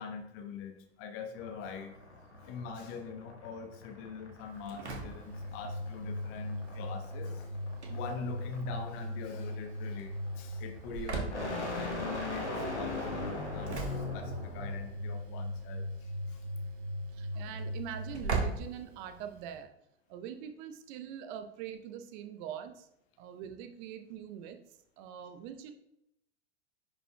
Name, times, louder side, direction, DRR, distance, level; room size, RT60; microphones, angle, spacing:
voice 1, 0.0-1.9 2.5-7.4 7.9-12.5 12.7-16.4, left 5 dB, 40° left, 6 dB, 1.0 m, -43 dB
sound 1, 1.4-14.9, left 2 dB, 85° left, 1.3 m, -40 dB
Engine / Slam, 4.4-19.6, right 1 dB, 75° right, 1.4 m, -39 dB
voice 2, 17.1-19.7 20.1-22.9 23.2-24.6 25.0-25.7, right 9 dB, 45° right, 8 dB, 0.8 m, -43 dB
10.5 x 5.3 x 2.3 m, 0.79 s
figure-of-eight pair, 90°, 34 cm